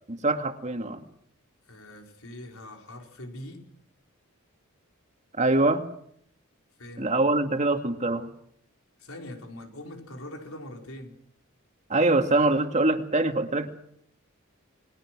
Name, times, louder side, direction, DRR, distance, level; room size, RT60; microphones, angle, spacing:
voice 1, 0.1-1.0 5.3-5.9 7.0-8.3 11.9-13.7, right 2 dB, 35° right, 6 dB, 2.3 m, -24 dB
voice 2, 1.7-3.6 6.8-7.1 9.0-11.1, left 1 dB, 75° left, 3 dB, 4.9 m, -42 dB
29.0 x 22.0 x 6.2 m, 0.68 s
head